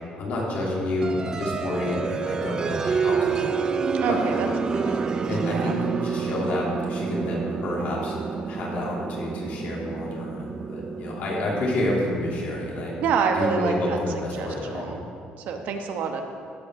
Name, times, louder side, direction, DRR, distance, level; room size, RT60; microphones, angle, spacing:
voice 1, 0.2-3.5 4.1-5.0 5.3-8.1 8.5-12.9 13.3-15.0, left 1 dB, 60° left, -4 dB, 3.1 m, -29 dB
sound 1, 1.0-13.5, right 5 dB, 25° right, 0.4 m, -29 dB
voice 2, 3.9-4.5 4.7-5.7 13.0-14.0 14.3-15.0 15.5-16.2, right 6 dB, 65° right, 4 dB, 1.1 m, -27 dB
15.5 x 5.7 x 6.3 m, 2.3 s
cardioid pair, 160°, 3 cm